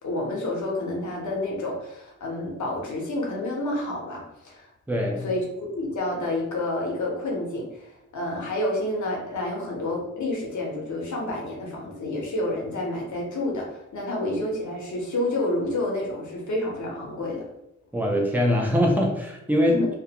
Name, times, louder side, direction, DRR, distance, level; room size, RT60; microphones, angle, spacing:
voice 1, 0.0-4.7 5.2-17.5 19.7-19.9, left 1 dB, 75° left, -2 dB, 0.8 m, -29 dB
voice 2, 4.9-5.3 17.9-19.8, equal, 5° right, 0 dB, 0.4 m, -22 dB
2.3 x 2.1 x 2.8 m, 0.86 s
wide cardioid pair, 155°, 29 cm